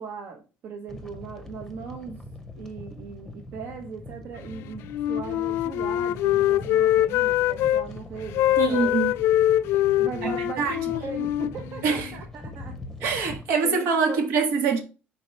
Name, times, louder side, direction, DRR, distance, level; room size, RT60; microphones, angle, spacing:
voice 1, 0.0-2.2 2.5-9.1 10.0-12.8 13.6-14.2, right 5 dB, 60° right, 1.0 m, -38 dB
sound 1, 0.9-13.5, left 1 dB, 5° left, 0.8 m, -42 dB
Wind instrument woodwind instrument, 4.9-7.8 8.3-12.2, left 13 dB, 80° left, 0.4 m, -23 dB
voice 2, 8.6-9.1 10.2-10.3 10.6-10.8 11.8-12.1 13.0-14.8, right 5 dB, 90° right, 1.5 m, -24 dB
4.6 x 4.2 x 5.3 m
cardioid pair, 145°, 4 cm